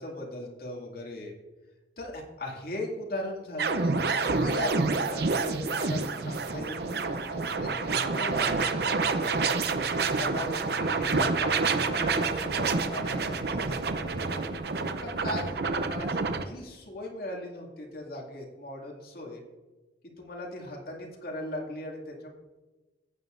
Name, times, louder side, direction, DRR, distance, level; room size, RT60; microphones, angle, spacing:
voice 1, 0.0-1.3 2.0-9.6 10.2-14.5 15.0-19.4 20.0-22.3, left 1 dB, 55° left, -1 dB, 2.3 m, -39 dB
sound 1, 3.6-16.4, right 4 dB, 60° right, 0.6 m, -28 dB
14.5 x 9.2 x 2.6 m, 1.2 s
head